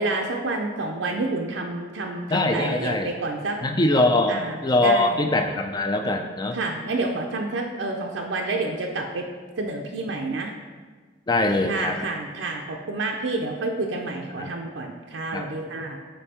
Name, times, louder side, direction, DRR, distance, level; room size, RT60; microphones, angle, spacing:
voice 1, 0.0-3.6 4.3-5.2 6.5-9.3 9.6-10.5 11.7-16.0, right 2 dB, 75° right, 1 dB, 0.6 m, -29 dB
voice 2, 2.3-3.1 3.6-6.6 11.3-12.0 14.4-14.5 15.3-15.5, left 2 dB, 20° left, 5 dB, 0.4 m, -22 dB
5.3 x 4.4 x 4.3 m, 1.4 s
head